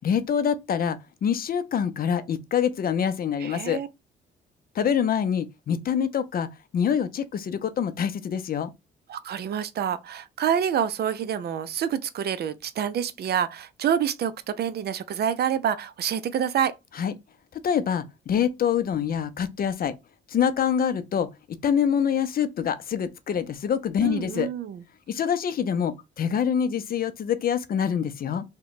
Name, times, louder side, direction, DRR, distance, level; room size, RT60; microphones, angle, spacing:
voice 1, 0.0-3.8 4.8-6.5 6.7-8.7 17.0-17.1 17.6-19.9 20.3-24.5 25.1-28.4, left 8 dB, 50° left, 0.5 m, -25 dB
voice 2, 3.4-3.9 9.1-16.7 24.0-24.8, right 9 dB, 55° right, 0.4 m, -27 dB
2.9 x 2.2 x 4.0 m
cardioid pair, 90°, 20 cm